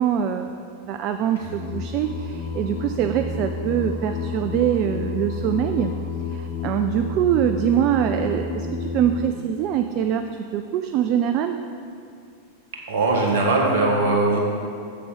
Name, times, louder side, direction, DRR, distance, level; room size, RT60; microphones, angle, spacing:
voice 1, 0.0-5.9 6.3-10.2 10.5-11.6, right 10 dB, 40° right, 7 dB, 0.3 m, -23 dB
Singing, 1.3-9.2, left 5 dB, 65° left, 1.4 m, -30 dB
voice 2, 12.9-14.4, right 2 dB, 55° right, -1 dB, 1.5 m, -20 dB
7.6 x 6.7 x 4.9 m, 2.4 s
figure-of-eight pair, 90°, 0 cm